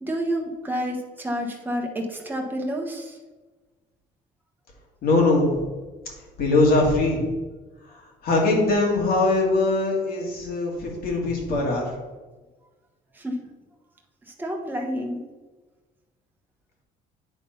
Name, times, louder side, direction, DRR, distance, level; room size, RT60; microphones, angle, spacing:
voice 1, 0.0-3.2 13.1-13.5 14.2-15.2, equal, 10° right, 1 dB, 1.2 m, -29 dB
voice 2, 5.0-5.6 6.4-7.3 8.2-11.8, left 2 dB, 65° left, -1 dB, 2.3 m, -21 dB
9.2 x 3.7 x 5.6 m, 1.3 s
cardioid pair, 110°, 17 cm